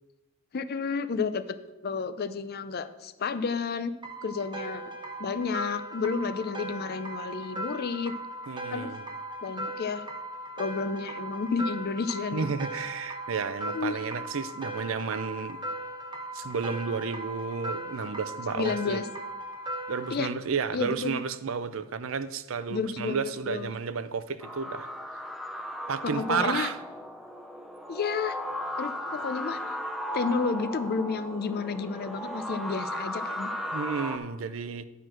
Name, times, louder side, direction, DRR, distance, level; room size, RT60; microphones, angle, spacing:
voice 1, 0.5-1.6 1.8-3.9 4.2-4.8 5.2-8.1 8.7-8.9 9.4-10.0 10.6-12.5 13.7-14.0 18.5-19.0 20.1-20.3 20.7-21.2 22.7-23.7 26.0-26.7 27.9-28.4 28.8-29.6 30.1-33.5, left 5 dB, 50° left, 12 dB, 0.5 m, -31 dB
sound 1, 4.0-20.2, right 1 dB, 20° right, 0.9 m, -38 dB
voice 2, 8.5-9.0 12.3-15.6 16.3-19.0 19.9-24.9 25.9-26.8 33.7-34.8, right 5 dB, 65° right, 13 dB, 0.5 m, -32 dB
sound 2, 24.4-34.2, equal, ahead, 0.6 m, -36 dB
9.9 x 4.5 x 6.2 m, 1.1 s
head